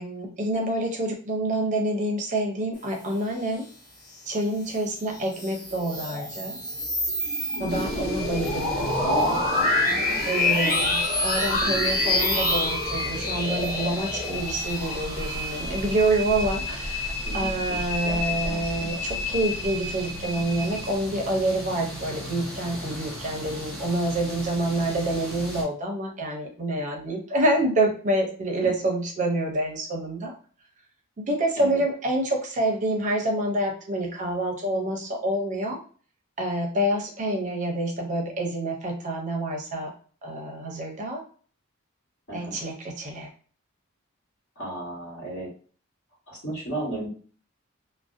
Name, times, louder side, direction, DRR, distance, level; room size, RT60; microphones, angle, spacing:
voice 1, 0.0-3.6 4.3-6.6 7.6-9.0 10.2-30.3 31.2-35.8 36.4-39.9 40.2-41.2 42.3-43.3, right 1 dB, 35° right, 1 dB, 0.5 m, -27 dB
sound 1, 5.2-16.1, left 2 dB, 40° left, 0.7 m, -26 dB
sound 2, 7.2-20.9, left 2 dB, 15° left, 0.3 m, -35 dB
sound 3, 7.7-25.6, equal, ahead, 0.9 m, -37 dB
voice 2, 17.2-18.2 18.4-19.0 31.6-31.8 42.3-42.6 44.6-45.5 46.3-47.1, right 2 dB, 60° left, -4 dB, 1.3 m, -35 dB
2.4 x 2.0 x 2.5 m, 0.42 s
head